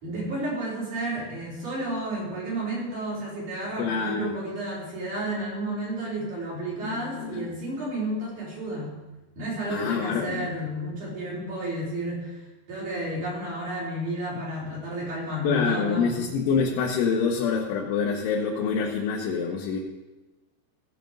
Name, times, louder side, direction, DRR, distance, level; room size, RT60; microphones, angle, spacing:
voice 1, 0.0-8.9 9.3-12.4 12.7-16.2, right 1 dB, 40° right, -6 dB, 5.3 m, -31 dB
voice 2, 3.8-4.3 6.8-7.5 9.7-10.5 15.5-19.8, left 5 dB, 85° left, -1 dB, 3.3 m, -26 dB
16.5 x 5.8 x 6.6 m, 1.1 s
omnidirectional pair, 5.4 m